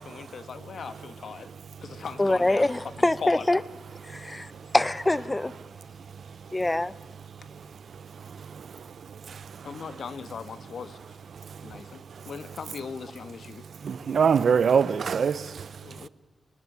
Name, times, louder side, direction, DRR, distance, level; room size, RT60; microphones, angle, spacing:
voice 1, 0.0-1.5 1.8-2.7 3.0-3.5 9.6-11.0 11.6-13.6 15.8-16.1, left 6 dB, 70° left, 1.8 m, -39 dB
voice 2, 2.2-3.6 4.0-5.5 6.5-6.9, left 2 dB, 20° left, 1.1 m, -24 dB
voice 3, 13.8-15.7, right 6 dB, 70° right, 1.1 m, -23 dB
25.0 x 24.0 x 10.0 m
cardioid pair, 65°, 0 cm